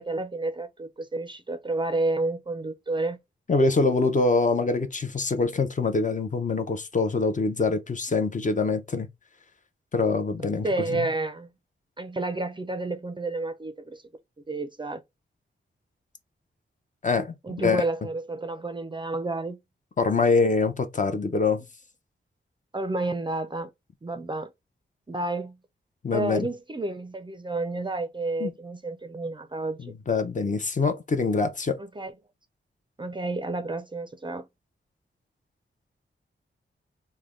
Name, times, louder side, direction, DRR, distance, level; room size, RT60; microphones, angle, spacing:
voice 1, 0.0-3.2 10.6-11.5 12.0-14.0 14.5-15.0 17.4-19.6 22.7-23.7 24.0-24.5 25.1-25.6 26.1-29.9 31.8-32.1 33.0-34.5, right 2 dB, 25° right, 0.4 m, -30 dB
voice 2, 3.5-9.1 9.9-11.1 17.0-17.8 20.0-21.6 26.0-26.5 28.4-28.5 29.8-31.8, left 4 dB, 40° left, 0.6 m, -24 dB
3.3 x 2.2 x 3.5 m
wide cardioid pair, 110°, 21 cm